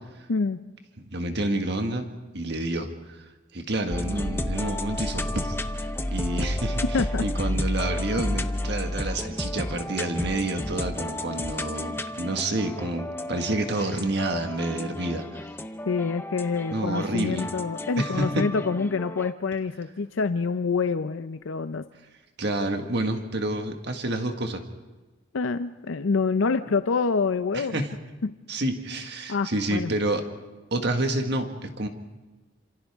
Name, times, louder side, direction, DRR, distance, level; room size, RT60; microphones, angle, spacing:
voice 1, 0.3-0.6 6.9-7.3 15.9-21.8 25.3-27.8 28.2-28.4 29.3-29.9, left 4 dB, 85° left, 11 dB, 0.6 m, -26 dB
voice 2, 1.0-2.1 2.3-3.2 3.5-6.8 7.2-15.5 16.7-17.5 18.0-18.5 22.4-24.6 27.5-27.9 28.5-30.2 30.7-31.9, right 2 dB, 60° right, 5 dB, 1.7 m, -29 dB
sound 1, 3.9-19.3, left 1 dB, 10° left, 0.6 m, -32 dB
28.0 x 27.0 x 3.6 m, 1.2 s
head